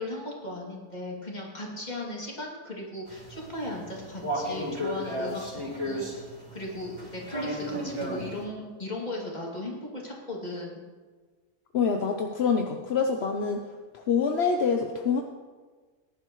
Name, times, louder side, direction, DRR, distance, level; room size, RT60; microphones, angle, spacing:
voice 1, 0.0-10.8, left 1 dB, 25° left, -3 dB, 2.6 m, -37 dB
sound 1, 3.1-8.4, equal, 85° right, 4.7 m, -34 dB
voice 2, 11.7-13.6 13.9-15.2, left 5 dB, 55° left, 4 dB, 0.8 m, -26 dB
19.5 x 11.0 x 3.1 m, 1.4 s
omnidirectional pair, 1.7 m